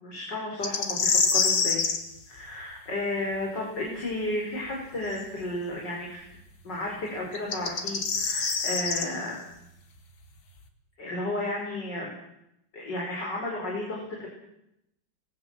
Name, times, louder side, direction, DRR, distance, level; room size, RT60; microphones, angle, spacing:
voice 1, 0.0-1.8 2.3-6.3 6.6-9.5 11.0-12.1 12.7-14.3, left 1 dB, 60° left, -2 dB, 5.8 m, -33 dB
sound 1, 0.6-2.0 5.1-5.2 7.4-9.1, left 5 dB, 75° left, 2.9 m, -25 dB
25.0 x 20.0 x 7.6 m, 0.81 s
omnidirectional pair, 2.2 m